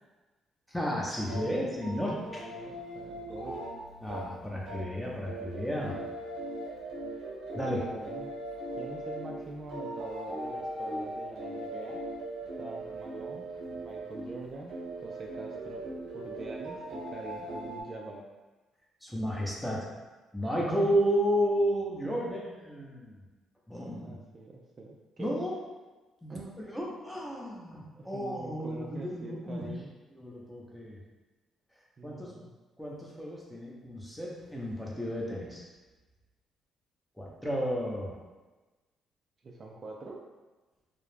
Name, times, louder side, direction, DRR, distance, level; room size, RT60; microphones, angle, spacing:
voice 1, 0.7-2.4 4.0-6.0 7.5-7.8 19.0-19.9 20.3-23.2 23.7-24.2 25.2-25.6 26.2-26.4 26.7-29.7 30.1-31.0 32.0-32.3 32.8-35.6 37.2-38.2, equal, 5° left, -4 dB, 0.7 m, -32 dB
voice 2, 1.2-3.7 7.7-8.3 8.8-12.0 12.6-14.8 15.0-15.8 16.1-18.2 24.0-25.3 26.3-26.6 28.0-29.9 32.0-32.5 39.4-40.2, right 2 dB, 45° right, -1 dB, 0.3 m, -44 dB
sound 1, 1.2-5.0 5.3-14.4 14.6-17.8, right 1 dB, 75° right, 0.6 m, -39 dB
2.3 x 2.0 x 3.2 m, 1.2 s
supercardioid pair, 75°, 0 cm